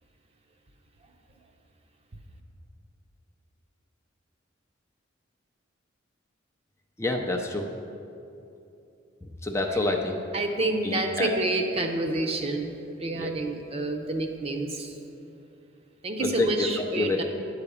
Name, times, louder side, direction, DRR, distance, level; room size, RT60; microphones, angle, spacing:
voice 1, 7.0-7.7 9.4-10.2 10.8-11.3 13.1-13.3 16.2-16.7 17.0-17.2, left 2 dB, 15° left, 2 dB, 0.5 m, -27 dB
voice 2, 10.3-12.7 13.0-14.9 16.0-17.2, right 2 dB, 30° right, 3 dB, 0.7 m, -28 dB
9.7 x 4.8 x 6.9 m, 2.8 s
head